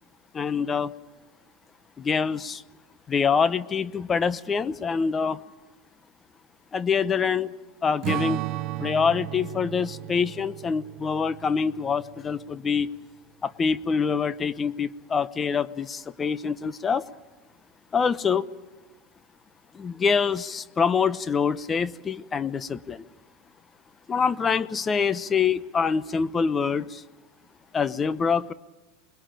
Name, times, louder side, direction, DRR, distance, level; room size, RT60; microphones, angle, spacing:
voice 1, 0.3-0.9 2.0-2.6 3.1-5.4 6.7-7.5 7.8-8.4 8.8-12.9 13.4-17.1 17.9-18.5 19.7-23.0 24.1-27.0 27.7-28.5, left 6 dB, 25° left, 0.8 m, -25 dB
Strum, 8.0-12.7, right 15 dB, 45° right, 0.9 m, -34 dB
28.0 x 21.0 x 9.0 m
supercardioid pair, 125°, 0 cm